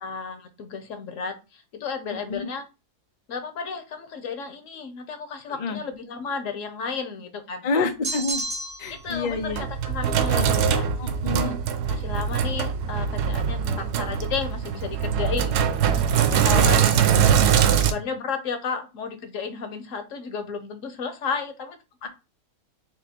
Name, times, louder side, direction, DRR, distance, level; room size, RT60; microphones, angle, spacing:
voice 1, 0.0-2.7 3.3-7.9 8.9-10.9 11.4-11.6 11.9-16.9 17.4-22.1, left 5 dB, 60° left, 8 dB, 1.0 m, -33 dB
voice 2, 7.6-8.4 8.8-9.7 10.3-10.6 11.0-11.6 16.5-16.7 17.1-17.2, left 4 dB, 85° left, 6 dB, 0.3 m, -28 dB
sound 1, 8.0-9.0, right 2 dB, 35° right, 0.6 m, -30 dB
Sink (filling or washing), 9.1-17.9, right 8 dB, 90° right, 1.2 m, -22 dB
3.7 x 3.1 x 4.2 m, 0.27 s
omnidirectional pair, 1.7 m